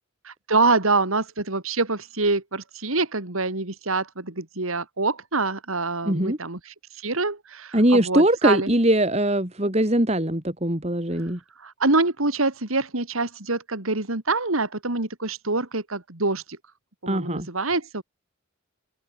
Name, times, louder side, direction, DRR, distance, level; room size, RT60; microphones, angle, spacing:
voice 1, 0.2-8.7 11.6-16.6 17.0-18.0, right 3 dB, 90° right, 3.0 m, -25 dB
voice 2, 6.1-6.4 7.7-11.4 17.1-17.5, right 1 dB, 30° right, 2.8 m, -21 dB
head